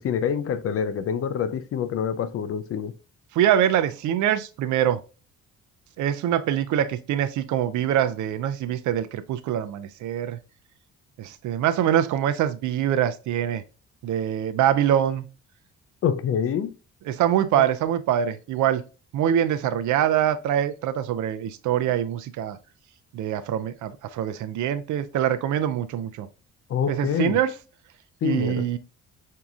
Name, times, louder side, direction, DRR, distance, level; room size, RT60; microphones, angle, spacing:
voice 1, 0.0-2.9 16.0-16.7 17.6-17.7 26.7-27.4 28.2-28.6, left 8 dB, 50° left, 0.4 m, -26 dB
voice 2, 3.3-5.0 6.0-10.4 11.2-13.6 14.0-15.2 17.1-18.8 19.1-22.6 23.1-26.3 26.9-27.5 28.2-28.8, right 10 dB, 75° right, 0.5 m, -24 dB
5.9 x 2.8 x 2.3 m
cardioid pair, 90°, 30 cm